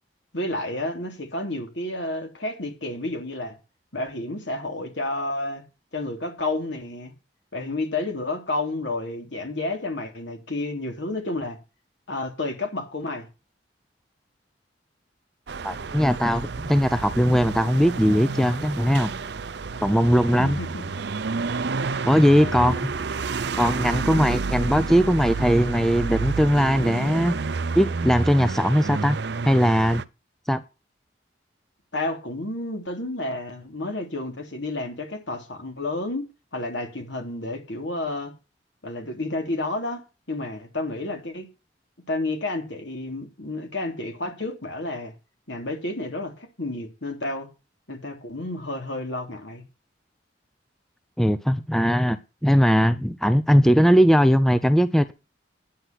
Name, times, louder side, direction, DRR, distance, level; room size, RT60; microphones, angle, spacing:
voice 1, 0.3-3.6 3.9-5.6 5.9-7.1 7.5-11.6 12.1-13.3 20.4-20.8 22.3-22.8 31.9-36.3 36.5-38.3 38.8-41.5 42.1-45.1 45.5-47.5 47.9-49.6, left 2 dB, 75° left, 3.1 m, -30 dB
sound 1, 15.5-30.0, right 4 dB, 65° right, 0.6 m, -30 dB
voice 2, 15.6-19.1 19.8-20.6 22.0-22.9 23.6-27.3 27.8-29.2 29.4-30.0 30.5-30.6 51.2-55.1, equal, ahead, 0.6 m, -20 dB
10.0 x 9.4 x 5.9 m
head